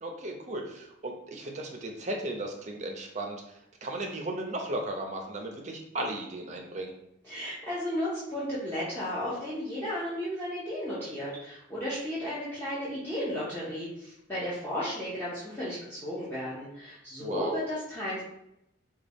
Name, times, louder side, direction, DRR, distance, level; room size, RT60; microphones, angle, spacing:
voice 1, 0.0-3.5 3.8-6.9 17.2-17.6, right 1 dB, 35° right, 2 dB, 0.5 m, -35 dB
voice 2, 7.2-18.2, equal, 10° left, -10 dB, 0.7 m, -34 dB
3.7 x 2.2 x 3.4 m, 0.82 s
head